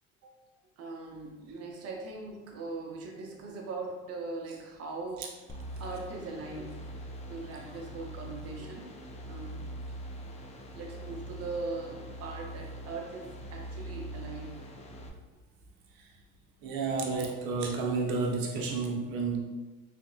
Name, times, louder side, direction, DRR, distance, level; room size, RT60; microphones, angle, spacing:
voice 1, 0.8-5.3 5.8-6.8 7.3-8.9 9.2-9.7 10.7-14.6, right 3 dB, 45° right, 0 dB, 0.8 m, -40 dB
sound 1, 5.5-15.1, right 1 dB, 20° left, 0.4 m, -43 dB
voice 2, 16.6-19.4, right 4 dB, 75° right, -1 dB, 0.8 m, -31 dB
3.4 x 2.8 x 2.7 m, 1.2 s
supercardioid pair, 110°, 36 cm